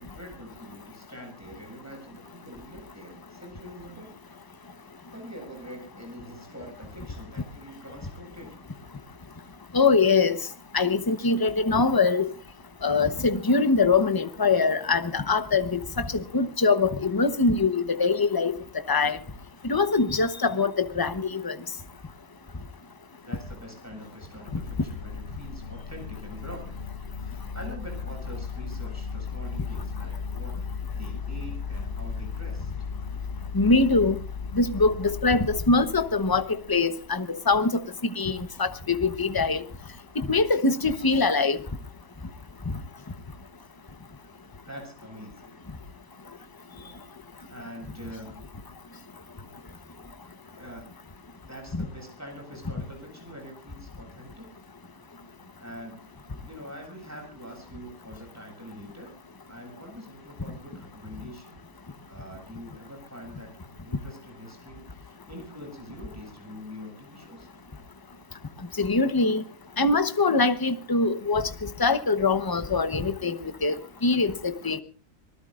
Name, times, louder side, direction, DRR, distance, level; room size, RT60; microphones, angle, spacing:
voice 1, 0.0-4.2 5.1-8.8 23.2-26.8 27.2-30.5 31.0-32.7 44.7-45.6 46.7-47.0 47.5-48.5 50.6-50.9 51.5-54.5 55.6-56.1 56.4-59.2 59.5-61.6 62.1-67.5, equal, 10° right, 7.5 m, -44 dB
voice 2, 9.7-10.4 10.7-12.3 12.8-18.5 18.9-19.2 19.6-21.6 33.5-34.2 34.5-37.9 38.2-39.6 40.3-41.6 51.7-51.8 68.8-69.4 69.8-73.7 74.0-74.8, left 3 dB, 20° left, 0.9 m, -23 dB
sound 1, 24.5-37.3, left 5 dB, 55° left, 1.3 m, -36 dB
26.0 x 19.5 x 2.5 m
omnidirectional pair, 1.4 m